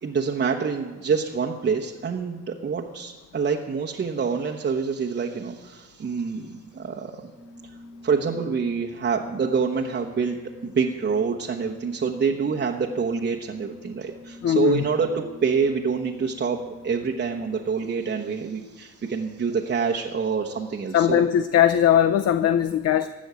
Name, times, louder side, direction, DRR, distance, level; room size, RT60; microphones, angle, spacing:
voice 1, 0.0-7.2 8.0-10.4 10.6-21.2, right 5 dB, 35° right, 0 dB, 1.1 m, -26 dB
Organ, 7.3-17.6, left 1 dB, 5° left, 1.9 m, -46 dB
voice 2, 14.4-14.8 20.9-23.1, left 10 dB, 55° left, 12 dB, 0.6 m, -20 dB
16.0 x 6.3 x 9.3 m, 1.2 s
cardioid pair, 90°, 30 cm